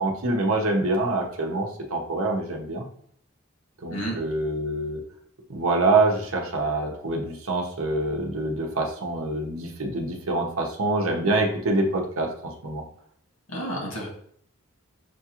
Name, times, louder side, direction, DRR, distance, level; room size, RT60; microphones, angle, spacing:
voice 1, 0.0-2.8 3.8-5.0 5.5-12.8, right 2 dB, 80° right, 2 dB, 0.8 m, -25 dB
voice 2, 13.5-14.1, right 1 dB, 75° left, -2 dB, 1.6 m, -30 dB
6.3 x 2.4 x 2.9 m, 0.64 s
head